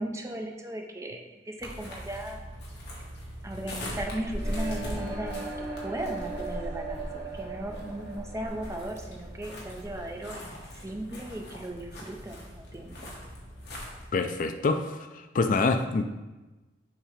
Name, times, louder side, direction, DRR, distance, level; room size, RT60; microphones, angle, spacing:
voice 1, 0.0-2.4 3.4-13.0, right 1 dB, 15° right, 2 dB, 0.6 m, -37 dB
sound 1, 1.6-14.1, equal, 60° left, 1.4 m, -40 dB
sound 2, 4.3-10.2, right 3 dB, 55° right, 2.0 m, -39 dB
voice 2, 14.1-16.0, left 3 dB, 45° left, 7 dB, 0.4 m, -26 dB
7.3 x 2.9 x 5.0 m, 1.1 s
head